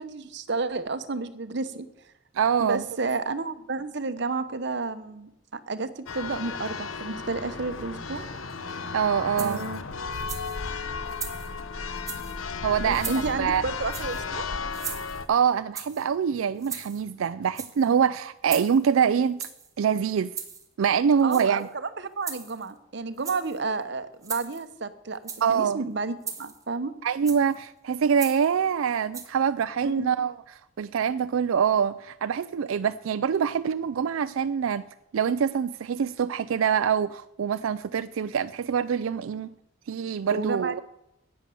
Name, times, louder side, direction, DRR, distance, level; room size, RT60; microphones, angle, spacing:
voice 1, 0.0-1.9 2.6-8.3 9.3-9.8 12.8-14.5 21.2-26.9 29.8-30.1 40.3-40.8, right 3 dB, 60° right, 11 dB, 0.9 m, -31 dB
voice 2, 2.3-2.8 8.9-9.6 12.6-13.1 13.4-13.6 15.3-19.5 19.8-20.3 20.8-21.7 25.4-25.8 27.0-30.3 30.8-34.9 35.1-39.5 39.9-40.8, right 7 dB, 85° right, 12 dB, 0.4 m, -25 dB
Church bell, 6.1-15.3, left 4 dB, 80° left, 0.8 m, -34 dB
Salsa Eggs - Blue Egg (raw), 9.4-9.8 10.1-10.6 11.1-11.5 12.0-12.4 12.9-13.3 13.9-14.3 14.7-15.3 15.7-16.1 16.6-17.1 17.4-17.9 18.5-18.9 19.4-19.7 20.3-20.7 21.2-21.7 22.2-22.7 23.2-23.6 24.2-24.7 25.1-25.6 26.2-26.6 27.3-27.6 28.2-28.5 29.1-29.3, right 6 dB, 15° right, 1.2 m, -38 dB
10.5 x 8.8 x 6.9 m, 0.86 s
head